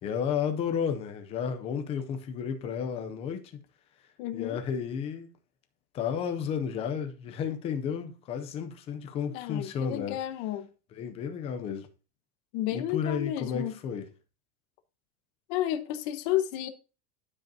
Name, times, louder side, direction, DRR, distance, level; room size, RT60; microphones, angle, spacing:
voice 1, 0.0-3.6 4.3-5.3 5.9-10.2 10.9-11.9 12.7-14.1, left 7 dB, 15° left, 0.4 m, -32 dB
voice 2, 4.2-4.6 9.3-10.7 12.5-13.7 15.5-16.7, left 12 dB, 40° left, 1.0 m, -31 dB
12.0 x 5.1 x 2.7 m
supercardioid pair, 170°, 43 cm